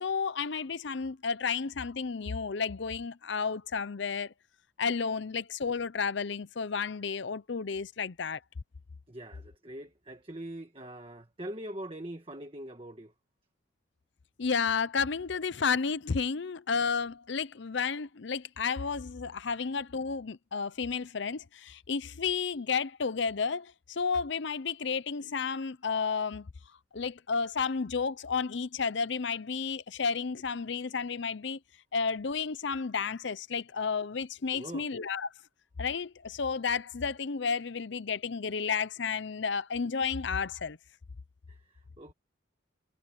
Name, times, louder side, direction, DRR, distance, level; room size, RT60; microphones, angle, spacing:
voice 1, 0.0-4.3 4.8-8.4 14.4-26.5 26.9-31.6 31.9-35.3 35.8-40.8, left 5 dB, 65° left, 0.6 m, -32 dB
voice 2, 9.1-13.1 34.5-34.9 41.5-42.1, right 1 dB, 25° right, 1.5 m, -43 dB
head